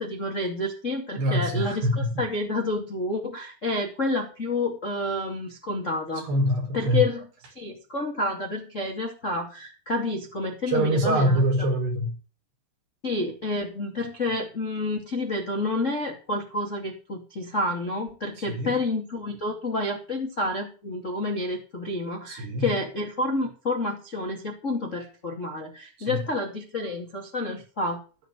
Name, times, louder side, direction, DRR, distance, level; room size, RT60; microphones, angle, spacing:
voice 1, 0.0-6.2 6.7-7.3 7.5-11.4 13.0-28.0, left 2 dB, 35° left, 1.1 m, -29 dB
voice 2, 1.2-2.2 6.2-7.1 10.7-12.2 18.5-18.7 22.3-22.7 26.0-26.2, equal, 55° right, 6.2 m, -24 dB
16.0 x 5.8 x 8.3 m
omnidirectional pair, 5.8 m